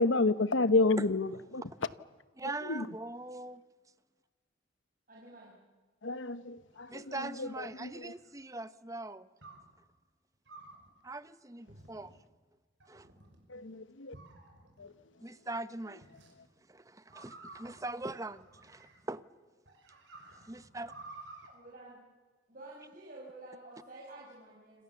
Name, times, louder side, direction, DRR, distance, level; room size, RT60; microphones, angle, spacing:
voice 1, 0.0-1.6 2.7-2.9 6.0-7.5 7.8-7.9 13.5-14.1 14.8-14.9, left 3 dB, 75° left, 14 dB, 1.0 m, -29 dB
voice 2, 2.4-3.6 6.9-9.3 11.0-12.1 12.9-13.1 15.2-16.1 16.7-19.2 20.4-20.9, right 2 dB, 15° right, 13 dB, 0.8 m, -41 dB
voice 3, 5.1-5.6 21.5-22.0 22.5-24.8, right 2 dB, 45° right, -4 dB, 5.4 m, -50 dB
sound 1, 6.6-8.4 9.4-9.7 10.4-10.9 11.7-12.2 12.8-13.4 14.1-14.9 16.0-16.3 17.1-19.2 19.6-21.5, right 2 dB, 65° right, 5.6 m, -53 dB
28.0 x 26.5 x 7.1 m, 1.4 s
head